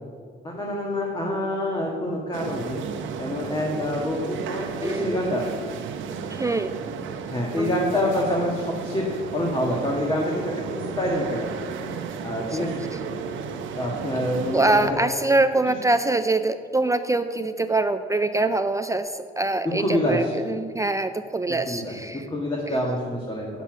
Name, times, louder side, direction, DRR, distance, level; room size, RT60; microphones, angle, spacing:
voice 1, 0.4-2.9 3.2-5.5 7.3-10.4 10.7-11.5 12.2-12.8 13.7-14.9 19.8-20.3 21.7-21.9 22.3-23.5, left 1 dB, 25° left, -2 dB, 1.6 m, -26 dB
sound 1, 2.3-14.9, right 6 dB, 80° right, 0.9 m, -34 dB
voice 2, 4.8-5.2 6.3-6.7 7.5-7.8 12.5-13.0 14.5-22.3 22.7-22.8, right 2 dB, 15° right, 9 dB, 0.4 m, -24 dB
9.0 x 7.0 x 6.1 m, 2.1 s
cardioid pair, 90°, 20 cm